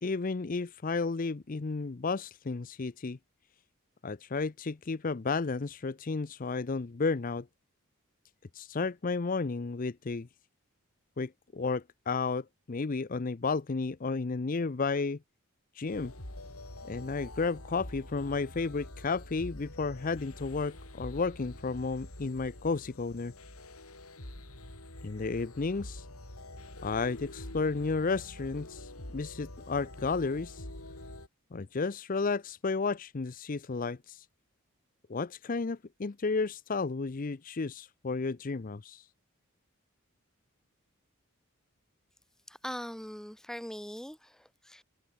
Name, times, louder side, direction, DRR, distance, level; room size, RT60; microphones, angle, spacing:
voice 1, 0.0-3.2 4.0-7.5 8.5-10.3 11.2-15.2 15.8-16.1 16.8-23.3 25.0-26.1 26.8-30.6 31.5-34.3 35.1-39.1, left 4 dB, 40° left, 0.5 m, -32 dB
sound 1, 15.9-31.3, left 1 dB, 90° left, 6.5 m, -46 dB
voice 2, 42.5-44.8, equal, ahead, 1.2 m, -41 dB
head